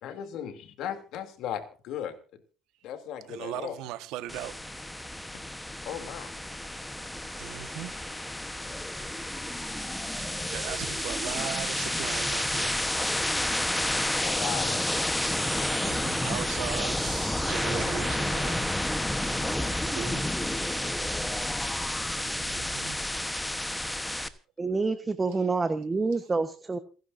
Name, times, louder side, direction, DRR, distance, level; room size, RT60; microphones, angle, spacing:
voice 1, 0.0-2.2 2.8-3.7 5.8-6.4 14.2-15.1, left 9 dB, 65° left, 2.9 m, -37 dB
voice 2, 3.3-4.5 7.4-8.0 9.8-10.0 10.5-12.9 15.8-18.6 19.9-20.3 22.4-23.1, right 13 dB, 85° right, 1.4 m, -38 dB
sound 1, 4.3-24.3, left 1 dB, 5° left, 1.1 m, -30 dB
voice 3, 24.6-26.8, right 4 dB, 15° right, 1.1 m, -27 dB
28.5 x 11.0 x 2.7 m
cardioid pair, 145°, 0 cm